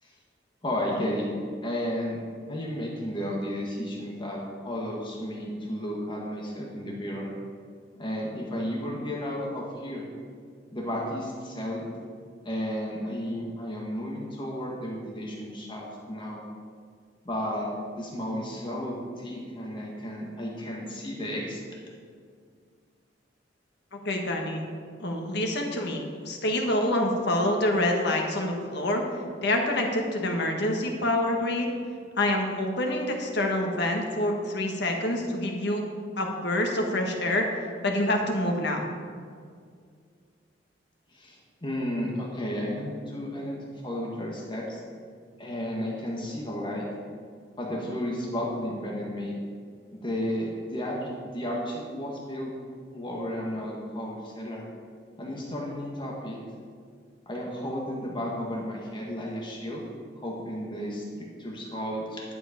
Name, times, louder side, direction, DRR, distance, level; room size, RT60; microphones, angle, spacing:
voice 1, 0.6-1.3 1.6-2.2 2.5-7.3 8.0-10.0 10.7-11.8 12.4-16.4 17.2-17.7 18.0-21.6 41.1-44.8 45.4-46.9 47.6-49.3 49.9-52.5 52.9-54.6 55.2-56.4 57.2-59.8 60.2-62.2, equal, 25° left, -2 dB, 1.6 m, -33 dB
voice 2, 23.9-24.6 25.0-29.0 29.4-31.7 32.2-35.8 36.2-37.5 37.8-38.8, left 1 dB, 65° left, 2 dB, 1.5 m, -26 dB
11.0 x 7.9 x 5.1 m, 2.1 s
head